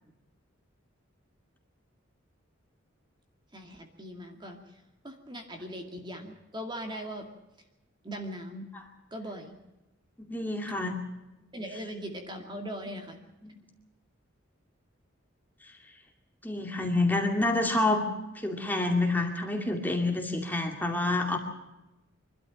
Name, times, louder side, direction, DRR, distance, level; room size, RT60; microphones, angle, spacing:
voice 1, 3.5-7.3 8.0-8.7 9.1-9.6 11.5-13.2, equal, 25° right, 4 dB, 2.2 m, -40 dB
voice 2, 10.2-11.0 13.4-13.6 16.4-18.0 18.4-21.4, left 2 dB, 10° left, 2 dB, 2.4 m, -28 dB
24.5 x 12.5 x 8.7 m, 0.99 s
head